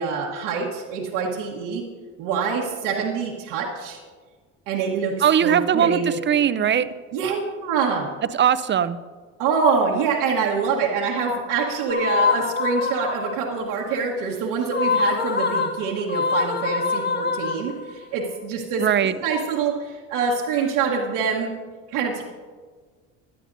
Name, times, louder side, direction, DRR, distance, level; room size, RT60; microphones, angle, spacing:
voice 1, 0.0-1.8 2.2-4.0 4.7-5.2 5.4-6.2 7.1-8.1 9.4-18.8 19.2-21.5 21.9-22.2, right 5 dB, 85° right, -4 dB, 1.4 m, -25 dB
voice 2, 5.2-6.9 8.3-9.0 18.8-19.1, right 9 dB, 35° right, 14 dB, 0.6 m, -20 dB
sound 1, 11.9-13.6 14.6-18.0, left 5 dB, 30° left, 1.3 m, -24 dB
16.0 x 10.5 x 2.6 m, 1.5 s
supercardioid pair, 85°, 34 cm